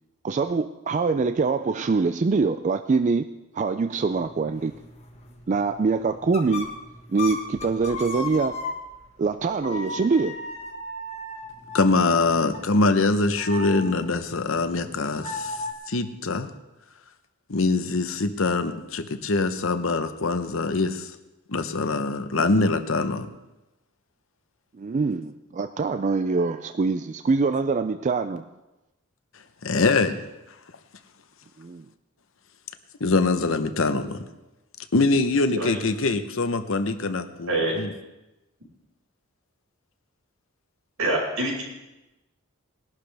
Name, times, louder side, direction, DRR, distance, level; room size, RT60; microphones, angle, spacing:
voice 1, 0.2-4.7 5.5-6.7 7.1-8.6 9.2-10.4 24.8-28.5 31.6-31.9, right 4 dB, 35° right, 10 dB, 0.3 m, -24 dB
sound 1, 4.1-9.1 9.6-15.7, left 2 dB, 30° left, 1.5 m, -37 dB
voice 2, 11.7-15.6 15.9-16.5 17.5-21.1 21.5-23.3 29.6-30.2 33.0-34.3 34.9-37.9, left 3 dB, 65° left, 9 dB, 0.9 m, -23 dB
voice 3, 41.0-41.6, right 2 dB, 85° right, -2 dB, 5.4 m, -25 dB
20.0 x 11.5 x 3.4 m, 1.0 s
head